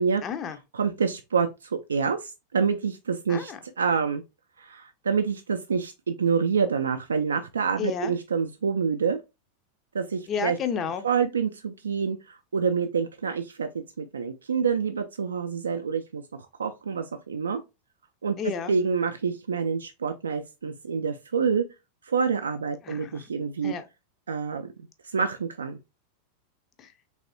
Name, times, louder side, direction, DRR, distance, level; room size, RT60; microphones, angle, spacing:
voice 1, 0.2-0.6 3.3-3.6 7.8-8.1 10.3-11.1 18.4-18.7 22.8-23.2 23.6-23.8 26.8-26.9, left 7 dB, 30° left, 0.5 m, -31 dB
voice 2, 0.7-4.2 4.6-9.2 9.9-10.6 11.0-16.2 16.6-17.6 18.2-18.4 18.7-21.6 22.0-23.7 24.3-24.7 25.0-25.8, right 6 dB, 70° right, 0.3 m, -27 dB
3.4 x 3.2 x 2.5 m
figure-of-eight pair, 90°, 0 cm